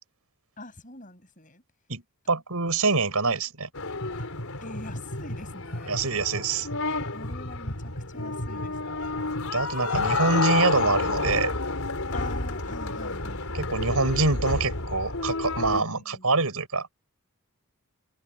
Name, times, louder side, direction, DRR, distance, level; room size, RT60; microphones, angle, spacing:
voice 1, 0.6-1.6 2.2-2.4 3.2-3.4 4.2-4.3 4.6-5.9 7.1-9.2 12.1-13.5 15.7-16.3, left 2 dB, 35° left, 8.0 m, -44 dB
voice 2, 2.3-3.7 5.9-6.7 9.4-11.5 13.5-16.9, right 3 dB, 85° right, 4.7 m, -25 dB
sound 1, 3.7-15.8, left 3 dB, 75° left, 4.2 m, -30 dB
head